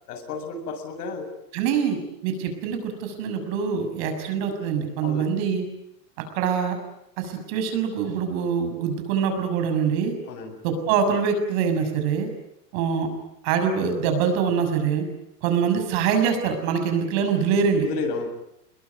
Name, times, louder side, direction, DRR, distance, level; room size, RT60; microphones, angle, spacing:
voice 1, 0.1-1.3 5.0-5.4 10.3-10.6 17.8-18.3, left 4 dB, 65° left, 5 dB, 7.3 m, -31 dB
voice 2, 1.5-2.0 2.2-5.7 6.4-6.8 7.2-10.1 10.6-12.3 12.7-13.1 13.4-15.1 15.4-17.9, right 6 dB, 45° right, 6 dB, 6.9 m, -24 dB
27.5 x 22.5 x 9.6 m, 0.79 s
supercardioid pair, 160°, 49 cm